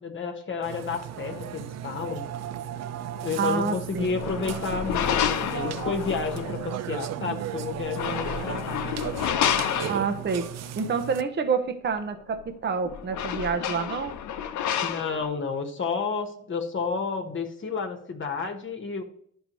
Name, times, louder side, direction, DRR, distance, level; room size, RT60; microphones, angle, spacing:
voice 1, 0.0-2.3 3.1-9.1 14.8-19.0, left 5 dB, 40° left, 4 dB, 1.1 m, -31 dB
Burping eructation, 0.6-11.2, right 10 dB, 60° right, 0.5 m, -35 dB
voice 2, 3.4-4.1 9.9-14.1, right 5 dB, 35° right, 8 dB, 0.8 m, -28 dB
sound 1, 4.0-6.7 7.8-10.4 12.4-12.5 12.8-15.3, left 9 dB, 75° left, 0.7 m, -29 dB
11.5 x 5.4 x 3.0 m, 0.68 s
cardioid pair, 90°, 30 cm